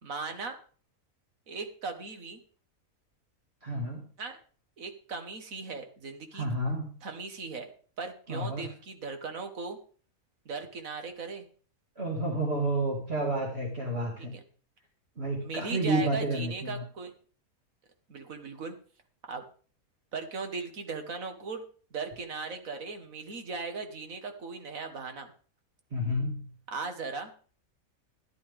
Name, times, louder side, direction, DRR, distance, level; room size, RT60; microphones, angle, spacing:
voice 1, 0.0-0.6 1.5-2.4 4.2-4.4 4.8-6.5 7.0-7.7 8.0-9.8 10.5-11.5 14.2-14.4 15.4-17.1 18.1-18.7 19.3-19.4 20.1-21.6 21.9-25.3 26.7-27.3, right 4 dB, 65° right, 6 dB, 1.8 m, -38 dB
voice 2, 3.6-4.0 6.3-6.9 8.3-8.7 12.0-14.3 15.2-16.8 25.9-26.5, right 1 dB, 45° right, -2 dB, 2.3 m, -30 dB
13.5 x 11.0 x 3.5 m, 0.42 s
omnidirectional pair, 1.5 m